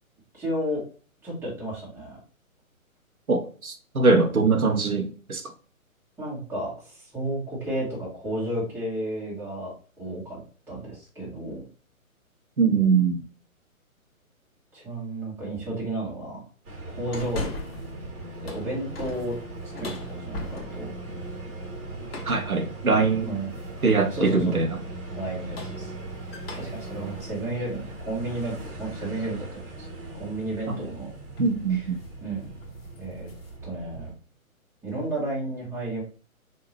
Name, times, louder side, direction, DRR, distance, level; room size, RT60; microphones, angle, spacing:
voice 1, 0.3-0.8 1.2-2.2 6.2-10.4 10.7-11.6 14.7-16.4 16.9-17.5 18.4-19.3 19.6-20.9 23.2-23.5 24.1-24.6 25.1-25.9 26.2-29.9 30.1-31.1 31.7-31.9 32.2-32.5 33.0-33.3 33.6-34.1 34.8-36.0, right 1 dB, 5° right, 1.5 m, -32 dB
voice 2, 3.3-5.5 12.6-13.2 22.3-23.3 23.8-24.8 30.7-30.8 31.4-31.9, right 4 dB, 85° right, 0.9 m, -22 dB
sound 1, 16.6-34.1, right 2 dB, 25° right, 1.4 m, -39 dB
sound 2, 17.1-18.0 18.3-21.0 22.1-22.5 23.5-24.0 25.3-28.7 29.2-29.3 30.8-31.0 31.3-31.6 31.9-32.2 32.5-33.6, left 3 dB, 40° left, 1.2 m, -40 dB
5.1 x 2.8 x 3.1 m
figure-of-eight pair, 130°, 42 cm